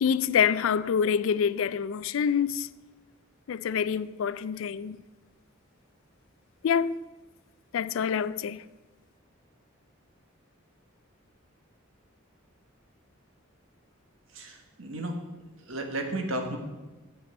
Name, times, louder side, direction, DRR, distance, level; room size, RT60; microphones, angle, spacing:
voice 1, 0.0-2.7 3.5-5.0 6.6-7.0 7.7-8.6, left 7 dB, 70° left, 0.3 m, -26 dB
voice 2, 14.3-15.1 15.7-16.6, right 1 dB, 80° right, 1.4 m, -33 dB
7.5 x 5.9 x 7.4 m
head